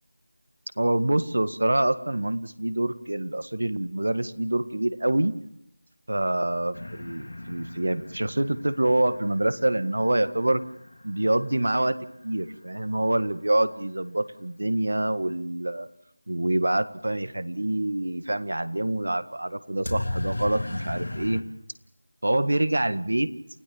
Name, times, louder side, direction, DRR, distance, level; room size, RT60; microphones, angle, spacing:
voice 1, 0.8-5.4 6.1-10.6 11.0-12.0 12.2-15.9 16.3-21.4 22.2-23.3, right 1 dB, 80° right, 13 dB, 1.7 m, -26 dB
sound 1, 6.7-12.5 19.8-21.4, left 1 dB, 85° left, 3.4 m, -36 dB
29.0 x 16.5 x 7.4 m, 0.77 s
figure-of-eight pair, 175°, 0 cm